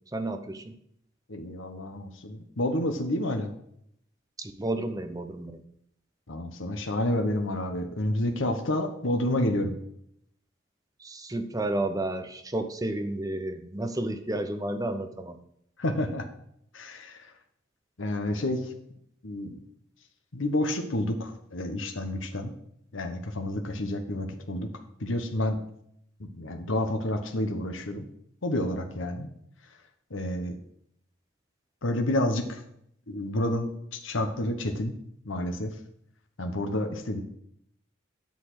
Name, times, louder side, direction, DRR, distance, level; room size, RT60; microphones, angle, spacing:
voice 1, 0.1-0.7 4.4-5.6 11.0-15.4, right 1 dB, 15° right, 7 dB, 0.7 m, -31 dB
voice 2, 1.3-3.5 6.3-9.7 15.8-16.2 16.7-17.3 18.0-18.7 19.2-19.6 20.3-22.5 22.9-24.7 25.0-25.6 26.2-28.1 28.4-29.3 30.1-30.6 31.8-32.6 33.1-34.9 35.2-35.7 36.4-37.2, left 1 dB, 75° left, 5 dB, 1.1 m, -29 dB
10.5 x 4.2 x 7.6 m, 0.72 s
head